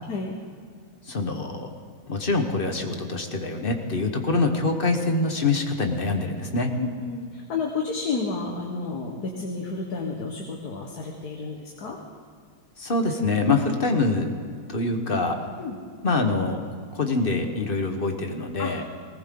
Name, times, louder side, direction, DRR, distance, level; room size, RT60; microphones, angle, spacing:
voice 1, 1.1-1.7 2.1-6.7 12.8-14.3 14.7-15.4 16.0-16.6 16.9-18.8, left 3 dB, 30° left, 4 dB, 1.2 m, -25 dB
voice 2, 6.8-12.0 13.5-13.6 15.6-15.8 18.6-18.7, left 4 dB, 55° left, 0 dB, 1.8 m, -30 dB
19.5 x 19.0 x 3.9 m, 2.2 s
omnidirectional pair, 2.2 m